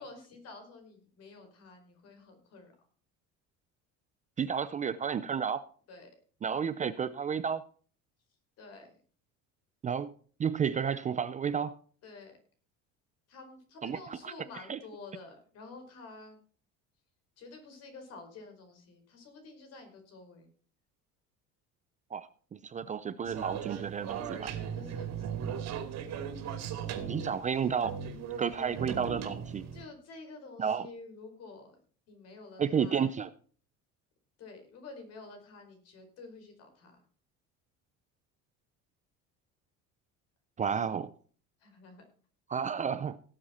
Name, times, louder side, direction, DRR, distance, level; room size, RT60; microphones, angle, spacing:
voice 1, 0.0-2.7 5.9-6.1 8.6-9.0 12.0-12.4 13.3-16.4 17.4-20.5 24.7-25.8 29.7-31.8 32.1-33.1 34.4-37.0 41.6-42.0, left 3 dB, 50° left, 6 dB, 4.7 m, -50 dB
voice 2, 4.4-5.6 6.4-7.6 9.8-10.1 10.4-11.8 13.8-14.3 14.7-14.8 22.1-24.5 27.1-27.9 28.4-29.6 30.6-30.9 32.6-33.3 40.6-41.1 42.5-43.2, right 7 dB, 25° right, 13 dB, 0.5 m, -31 dB
sound 1, 23.2-29.8, right 7 dB, 55° right, 2.7 m, -38 dB
17.5 x 7.7 x 4.3 m, 0.43 s
cardioid pair, 135°, 31 cm